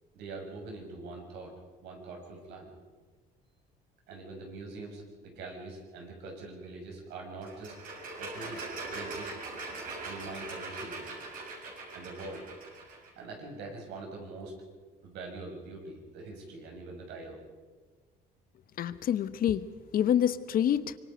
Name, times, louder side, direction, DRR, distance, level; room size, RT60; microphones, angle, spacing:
voice 1, 0.1-1.5 1.8-2.7 4.1-7.7 8.2-9.3 10.0-11.2 11.9-12.4 13.2-14.5 15.0-17.4, right 3 dB, 85° right, 1 dB, 6.7 m, -43 dB
sound 1, 7.4-13.1, right 3 dB, 55° right, 6.9 m, -41 dB
voice 2, 18.8-21.0, left 10 dB, 60° left, 14 dB, 1.0 m, -27 dB
25.0 x 23.5 x 5.2 m, 1.4 s
cardioid pair, 110°, 17 cm